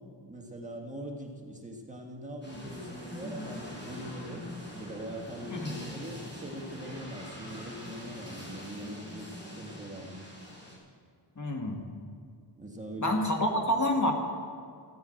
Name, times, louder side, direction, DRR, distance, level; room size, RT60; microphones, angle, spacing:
voice 1, 0.3-4.5 4.8-10.3 12.6-13.5, right 1 dB, 15° right, 0 dB, 1.7 m, -42 dB
sound 1, 2.4-10.8, equal, 25° left, 4.8 m, -43 dB
voice 2, 11.4-11.9 13.0-14.1, left 1 dB, 40° left, 2 dB, 1.6 m, -28 dB
14.5 x 9.5 x 7.7 m, 2.2 s
wide cardioid pair, 125°, 44 cm